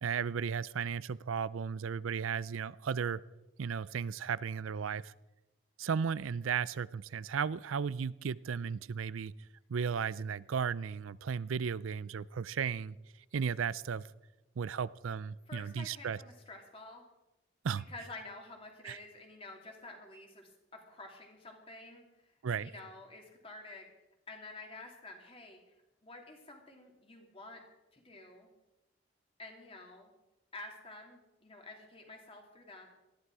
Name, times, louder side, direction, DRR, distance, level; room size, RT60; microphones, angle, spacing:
voice 1, 0.0-3.2 3.6-5.1 5.8-9.3 9.7-13.0 13.3-14.0 14.6-16.2 17.6-17.8 18.8-19.0 22.4-22.7, right 6 dB, 90° right, 0.5 m, -35 dB
voice 2, 15.5-17.1 17.9-22.3 22.6-23.9 24.3-25.7 26.0-27.6 27.9-28.5 29.4-30.1 30.5-32.9, left 2 dB, 30° left, 2.9 m, -50 dB
19.0 x 14.0 x 4.8 m
head